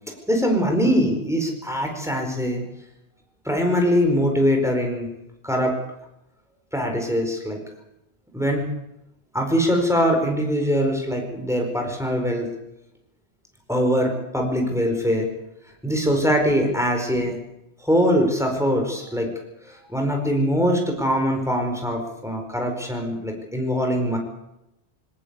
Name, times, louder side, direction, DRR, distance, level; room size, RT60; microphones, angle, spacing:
voice 1, 0.3-2.6 3.4-5.1 5.4-5.8 6.7-7.6 8.3-8.7 9.3-12.5 13.7-15.3 15.8-17.4 17.8-19.3 19.7-24.2, equal, 5° right, 2 dB, 4.6 m, -22 dB
21.5 x 18.0 x 8.2 m, 0.89 s
omnidirectional pair, 1.1 m